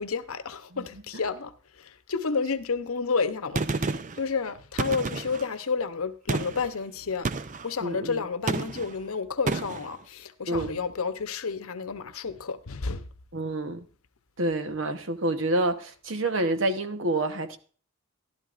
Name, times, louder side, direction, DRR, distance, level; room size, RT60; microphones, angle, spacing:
voice 1, 0.0-13.1, left 5 dB, 85° left, 0.9 m, -31 dB
Gunshot gunfire, 3.6-4.2 4.8-5.5 6.3-6.7 7.3-7.7 8.5-9.0 9.5-9.9, right 3 dB, 35° right, 0.5 m, -30 dB
voice 2, 7.8-8.2 10.5-10.8 13.3-13.8 14.4-17.6, right 2 dB, 65° right, 1.1 m, -28 dB
14.5 x 12.0 x 2.5 m
head